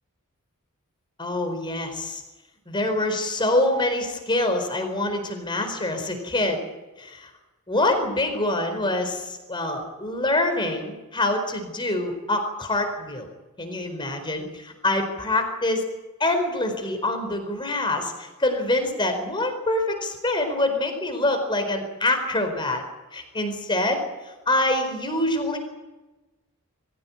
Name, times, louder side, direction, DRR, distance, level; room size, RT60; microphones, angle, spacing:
voice 1, 1.2-2.2 2.7-6.7 7.0-7.3 7.7-13.3 13.6-15.8 16.2-22.8 23.1-25.6, left 2 dB, 20° left, 5 dB, 4.6 m, -25 dB
23.0 x 16.0 x 9.9 m, 1.1 s
head